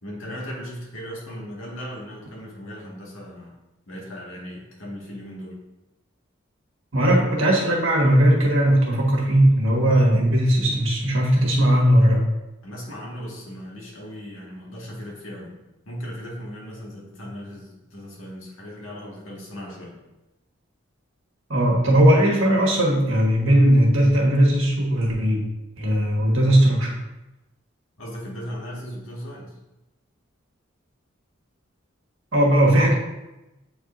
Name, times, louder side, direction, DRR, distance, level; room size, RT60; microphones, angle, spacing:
voice 1, 0.0-3.6 3.9-5.6 12.6-15.6 15.9-20.0 28.0-29.6, equal, 80° left, -3 dB, 1.8 m, -37 dB
voice 2, 6.9-12.2 21.5-25.4 25.8-26.9 32.3-32.9, right 1 dB, 80° right, -1 dB, 1.5 m, -18 dB
7.9 x 4.5 x 2.6 m, 0.97 s
head